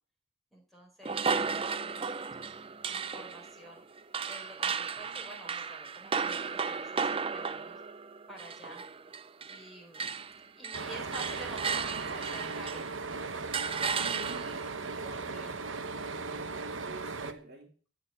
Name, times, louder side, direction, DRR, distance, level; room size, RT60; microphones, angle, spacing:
voice 1, 0.5-2.1 2.3-2.5 2.9-3.8 4.3-7.8 8.3-8.8 9.5-10.0 10.5-12.9 14.5-14.6 15.0-15.6, right 1 dB, ahead, -1 dB, 4.8 m, -49 dB
sound 1, 1.0-9.7 9.9-13.0 13.5-14.7, right 5 dB, 30° right, 0.5 m, -35 dB
sound 2, 10.7-17.3, right 4 dB, 75° right, 1.1 m, -38 dB
voice 2, 13.9-15.7 16.1-17.9, right 2 dB, 55° right, 2 dB, 2.9 m, -50 dB
15.5 x 5.3 x 9.8 m, 0.41 s
head